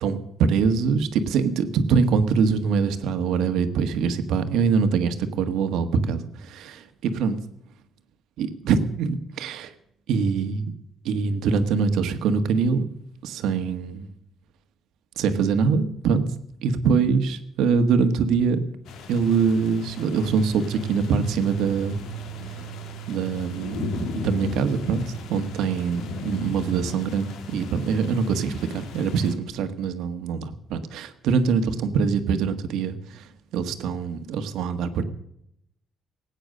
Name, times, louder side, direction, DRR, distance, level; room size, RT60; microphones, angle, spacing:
voice 1, 0.0-7.4 8.4-9.7 10.1-10.7 11.0-12.8 13.2-14.1 15.2-16.2 16.6-18.6 19.1-22.0 23.1-33.3 33.5-35.0, right 5 dB, 90° right, 9 dB, 1.5 m, -24 dB
sound 1, 18.8-29.3, left 4 dB, 75° left, 1.9 m, -37 dB
sound 2, 20.5-26.8, right 20 dB, 50° right, 0.9 m, -39 dB
18.5 x 9.1 x 6.6 m, 0.76 s
cardioid pair, 175°, 0 cm